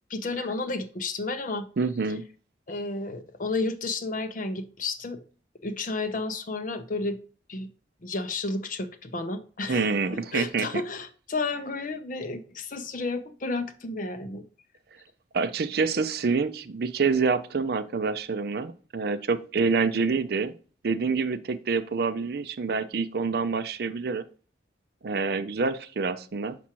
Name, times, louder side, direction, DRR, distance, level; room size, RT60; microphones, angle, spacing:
voice 1, 0.1-1.7 2.7-5.2 5.6-7.2 7.5-7.7 8.0-14.4, left 3 dB, 45° left, 9 dB, 0.7 m, -32 dB
voice 2, 1.8-2.2 9.7-10.7 15.3-20.5 20.8-24.2 25.0-26.6, right 4 dB, 60° right, 13 dB, 0.5 m, -27 dB
6.0 x 5.8 x 2.9 m, 0.39 s
head